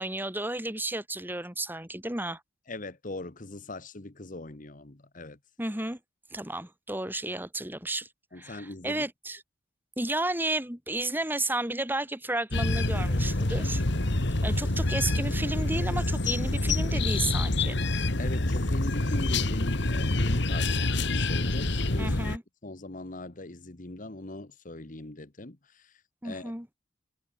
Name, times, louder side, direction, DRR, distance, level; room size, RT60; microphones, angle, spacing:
voice 1, 0.0-2.4 5.6-6.0 6.3-8.1 8.4-9.4 10.0-17.8 22.0-22.4 26.2-26.7, right 2 dB, 10° right, 3.9 m, -33 dB
voice 2, 2.7-5.4 8.3-9.0 18.2-22.3 22.6-26.5, left 2 dB, 45° left, 1.4 m, -40 dB
sound 1, 12.5-22.4, left 2 dB, 60° left, 2.0 m, -27 dB
head